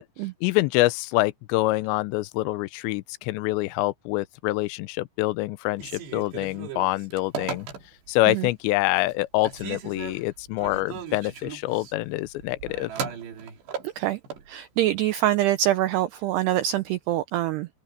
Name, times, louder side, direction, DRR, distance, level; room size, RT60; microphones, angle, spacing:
voice 1, 0.4-7.7 8.1-12.9, left 19 dB, 80° left, 2.8 m, -26 dB
Telephone, 5.7-8.2 8.7-9.2 9.4-14.5, right 6 dB, 65° right, 4.9 m, -37 dB
voice 2, 14.5-17.7, right 13 dB, 80° right, 2.4 m, -24 dB
open air
omnidirectional pair, 5.5 m